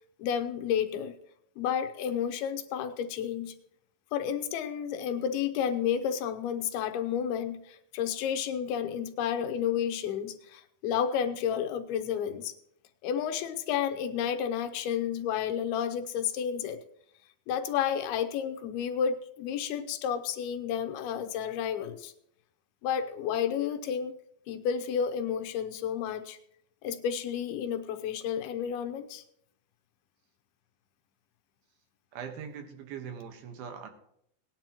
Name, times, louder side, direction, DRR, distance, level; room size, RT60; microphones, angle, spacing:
voice 1, 0.2-1.1 1.6-3.5 4.1-12.5 13.0-16.8 17.5-22.1 22.8-24.1 24.5-26.4 26.8-29.2, left 8 dB, 85° left, 8 dB, 2.8 m, -31 dB
voice 2, 32.1-33.9, right 7 dB, 75° right, 6 dB, 3.1 m, -41 dB
18.5 x 10.5 x 3.0 m, 0.73 s
omnidirectional pair, 4.4 m